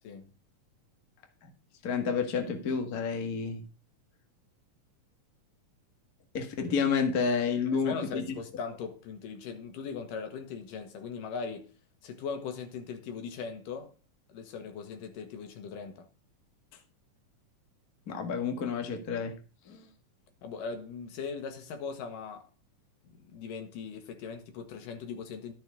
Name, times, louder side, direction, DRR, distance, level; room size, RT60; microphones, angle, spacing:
voice 1, 1.8-3.6 6.3-8.3 18.1-19.4 19.7-19.9, left 5 dB, 35° left, 1.6 m, -30 dB
voice 2, 7.7-11.7 12.0-13.9 14.3-16.1 20.4-22.5 23.3-25.5, left 5 dB, 80° left, 3.2 m, -39 dB
12.5 x 6.8 x 5.1 m
omnidirectional pair, 3.8 m